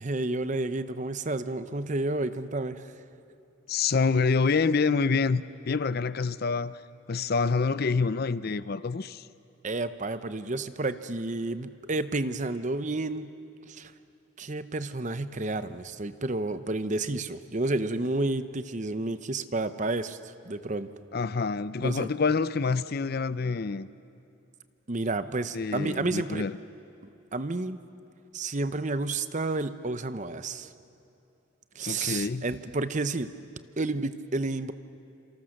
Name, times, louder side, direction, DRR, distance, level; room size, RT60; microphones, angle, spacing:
voice 1, 0.0-2.9 9.6-13.3 13.7-13.9 14.4-20.9 21.8-22.1 24.9-26.4 27.3-27.8 28.3-30.7 31.8-33.3 33.8-34.7, right 2 dB, 35° right, 0.8 m, -30 dB
voice 2, 3.7-6.8 7.1-9.2 21.1-23.9 25.5-26.6 31.8-32.5, left 4 dB, 50° left, 0.5 m, -27 dB
28.0 x 27.0 x 6.5 m
head